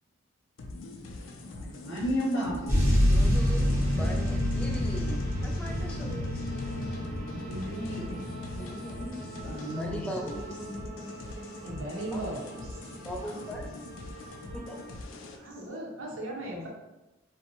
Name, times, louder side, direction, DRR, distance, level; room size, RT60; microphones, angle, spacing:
sound 1, 0.6-15.4, left 2 dB, 90° left, 0.4 m, -43 dB
voice 1, 1.3-3.0 7.3-8.2 8.5-8.6 9.4-10.1, equal, 65° left, -4 dB, 0.7 m, -33 dB
sound 2, 2.7-10.2 10.9-11.0, left 1 dB, 10° right, 0.8 m, -28 dB
sound 3, 2.7-15.0, right 2 dB, 40° right, 0.6 m, -46 dB
voice 2, 3.1-7.0 8.6-9.2 9.6-10.6 12.1-12.4 13.0-13.8 14.5-14.8, equal, 5° left, -1 dB, 0.3 m, -40 dB
voice 3, 11.6-13.5 15.4-16.7, right 1 dB, 80° right, -2 dB, 0.7 m, -38 dB
2.5 x 2.1 x 2.8 m, 1.0 s
head